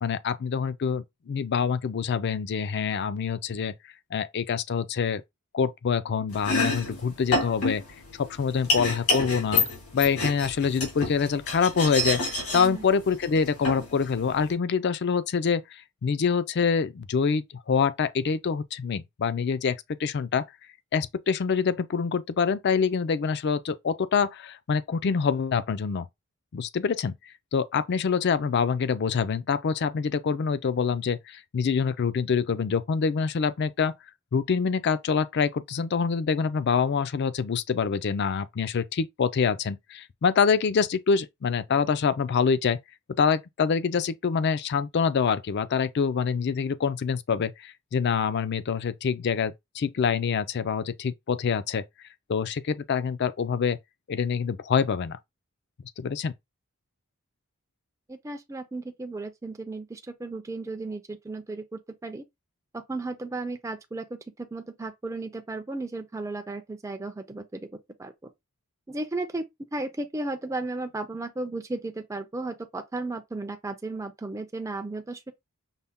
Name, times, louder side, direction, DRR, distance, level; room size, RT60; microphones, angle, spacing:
voice 1, 0.0-3.7 4.1-5.2 5.5-7.8 8.1-9.6 9.9-12.2 12.5-20.5 20.9-26.1 26.5-27.1 27.5-34.0 34.3-42.8 43.2-51.8 52.3-53.8 54.1-55.2 56.0-56.3, left 6 dB, 50° left, 0.4 m, -26 dB
Domestic sounds home sounds, 6.3-14.5, left 3 dB, 80° left, 2.6 m, -29 dB
voice 2, 12.5-12.8 58.1-62.2 62.7-67.7 68.0-68.3 68.9-69.5 69.7-75.3, right 2 dB, 15° right, 0.4 m, -34 dB
5.5 x 2.2 x 3.5 m
head